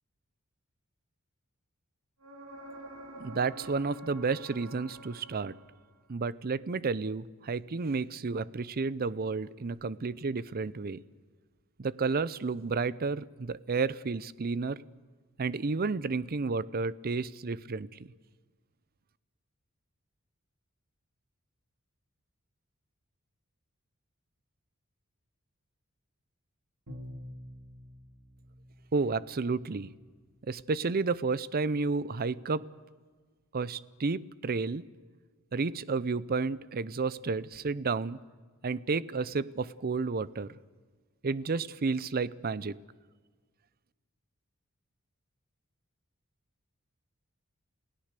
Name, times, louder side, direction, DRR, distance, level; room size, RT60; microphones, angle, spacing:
sound 1, 2.2-6.0 9.7-9.8, right 1 dB, 70° right, 3.1 m, -48 dB
voice 1, 3.2-5.5 6.1-11.0 11.8-14.8 15.4-17.9 28.9-29.9 30.5-32.7 33.5-34.8 35.5-38.2 38.6-40.5 41.2-42.7, right 4 dB, 45° right, 18 dB, 0.6 m, -31 dB
Bowed string instrument, 26.9-29.7, equal, 85° right, 2.8 m, -48 dB
28.5 x 17.0 x 6.7 m, 1.5 s
head